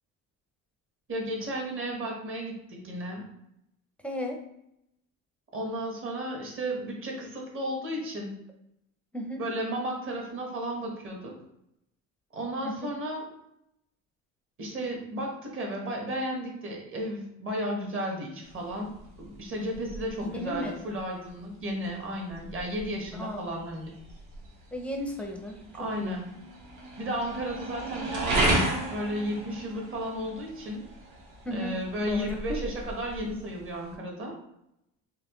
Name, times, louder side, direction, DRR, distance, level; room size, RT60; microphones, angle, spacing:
voice 1, 1.1-3.2 5.5-8.4 9.4-11.4 12.3-13.3 14.6-23.9 25.7-26.3 27.0-28.6 28.9-30.9 31.5-34.4, equal, 40° right, 0 dB, 1.2 m, -34 dB
voice 2, 4.0-4.4 9.1-9.4 12.6-12.9 20.3-20.8 23.1-23.4 24.7-26.2 31.4-31.7 32.0-32.6, equal, 5° left, 1 dB, 0.5 m, -34 dB
sound 1, 18.4-33.9, right 1 dB, 65° right, 1.4 m, -35 dB
4.2 x 2.9 x 3.0 m, 0.80 s
cardioid pair, 130°, 33 cm